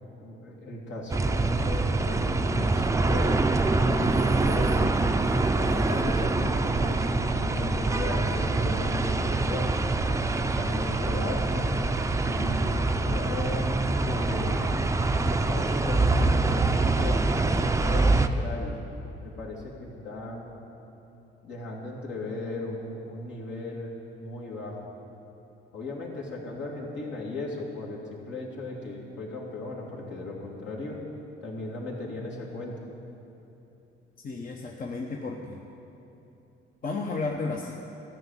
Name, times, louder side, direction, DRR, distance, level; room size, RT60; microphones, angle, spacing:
voice 1, 0.2-3.3 3.8-4.9 5.2-9.8 10.6-11.7 12.2-14.7 15.2-17.2 17.5-18.8 19.2-20.5 21.4-23.9 24.2-24.9 25.7-31.0 31.4-32.8, left 2 dB, 65° left, -3 dB, 2.6 m, -36 dB
sound 1, 1.1-18.3, right 2 dB, 15° right, 0.5 m, -25 dB
voice 2, 34.2-35.6 36.8-37.7, left 3 dB, 45° left, 0 dB, 1.0 m, -33 dB
13.5 x 6.3 x 9.1 m, 3.0 s
cardioid pair, 90°, 20 cm